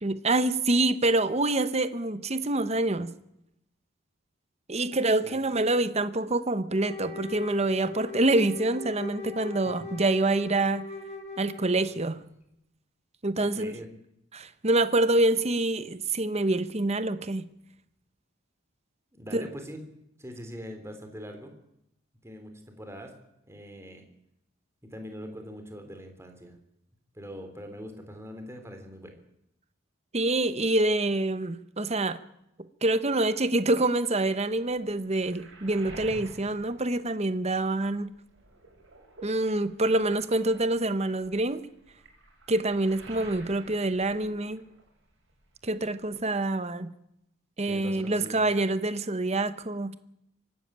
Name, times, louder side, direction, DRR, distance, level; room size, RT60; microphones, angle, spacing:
voice 1, 0.0-3.1 4.7-10.8 11.4-12.2 13.2-13.7 14.3-17.4 19.3-19.5 30.1-32.2 32.8-38.1 39.2-41.6 42.5-44.6 45.6-46.9 47.6-49.9, right 2 dB, 30° right, 12 dB, 1.0 m, -26 dB
Wind instrument woodwind instrument, 6.8-12.0, left 4 dB, 35° left, 4.2 m, -40 dB
voice 2, 13.5-13.9 19.1-19.8 20.2-21.5 22.2-23.1 23.4-24.0 24.8-26.6 27.1-29.2 47.6-48.4, equal, 15° right, 5 dB, 3.4 m, -42 dB
Waves surf, 34.6-37.8 38.1-45.0 45.3-46.2, right 2 dB, 65° right, 7.5 m, -50 dB
24.0 x 13.0 x 9.0 m, 0.80 s
head